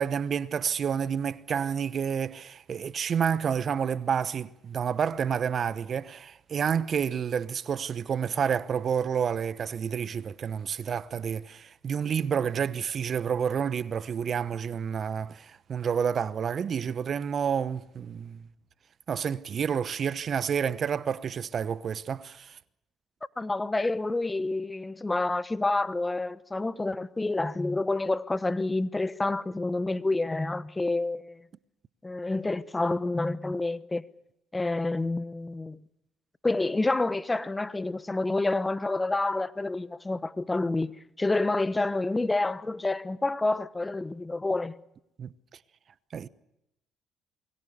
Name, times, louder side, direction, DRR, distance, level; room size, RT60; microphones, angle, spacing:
voice 1, 0.0-18.4 19.1-22.6 45.2-45.3 46.1-46.3, right 7 dB, 50° right, 1.0 m, -29 dB
voice 2, 23.4-31.4 32.0-34.1 34.5-35.8 36.4-40.9 41.2-44.7, left 2 dB, 20° left, 1.1 m, -28 dB
28.5 x 22.0 x 6.8 m
hypercardioid pair, 55°, 0 cm